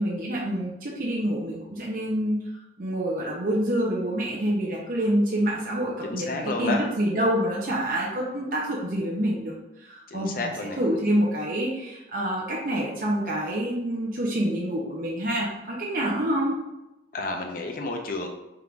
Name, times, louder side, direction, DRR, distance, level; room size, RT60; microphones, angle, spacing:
voice 1, 0.0-2.4 2.8-16.6, right 1 dB, 50° right, -4 dB, 0.7 m, -27 dB
voice 2, 6.0-6.8 10.1-10.8 17.1-18.3, left 3 dB, 50° left, 3 dB, 0.7 m, -30 dB
3.7 x 2.6 x 4.5 m, 0.94 s
head